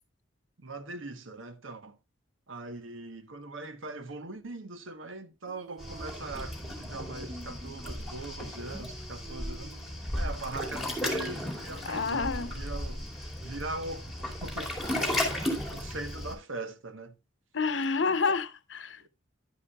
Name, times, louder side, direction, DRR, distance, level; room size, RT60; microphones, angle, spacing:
voice 1, 0.6-2.0 2.5-15.5 15.7-17.2 18.1-18.4 19.0-19.1, right 2 dB, 85° right, 1.2 m, -41 dB
Female singing, 5.5-13.1, equal, 20° right, 0.7 m, -49 dB
Waves surf, 5.8-16.3, left 1 dB, ahead, 2.4 m, -35 dB
voice 2, 11.8-12.5 17.5-19.0, left 4 dB, 65° left, 0.8 m, -29 dB
10.5 x 10.0 x 2.3 m
head